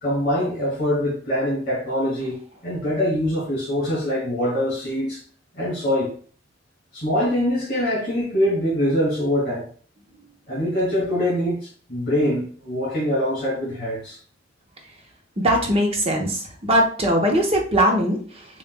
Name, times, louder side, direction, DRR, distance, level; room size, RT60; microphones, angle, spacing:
voice 1, 0.0-5.2 5.6-6.1 6.9-9.6 10.5-11.6 11.9-14.2, equal, 60° left, 1.9 m, -23 dB
voice 2, 15.4-18.5, equal, 35° right, 0.9 m, -20 dB
7.0 x 2.5 x 2.2 m
head